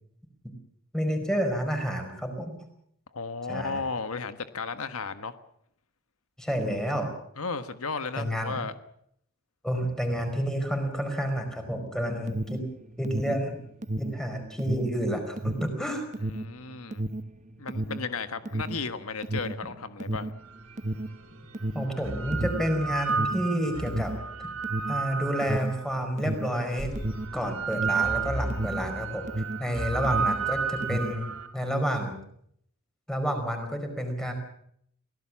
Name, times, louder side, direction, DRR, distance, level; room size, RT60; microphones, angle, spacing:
voice 1, 0.9-2.6 3.5-3.8 6.4-7.1 8.2-8.5 9.6-12.6 13.0-13.6 14.0-16.0 21.7-24.1 24.9-26.9 27.3-29.3 29.6-32.2 33.1-34.3, equal, 5° left, 5 dB, 4.8 m, -29 dB
voice 2, 3.1-5.4 7.4-8.7 16.2-17.0 17.6-20.3 29.7-30.1, left 4 dB, 85° left, 10 dB, 1.3 m, -34 dB
Alarm, 11.9-29.7 30.0-31.3, right 1 dB, 35° right, 1.1 m, -33 dB
sound 1, 20.7-20.8 21.8-26.0 26.8-31.5, right 5 dB, 70° right, 3.4 m, -32 dB
24.0 x 17.5 x 7.4 m, 0.69 s
head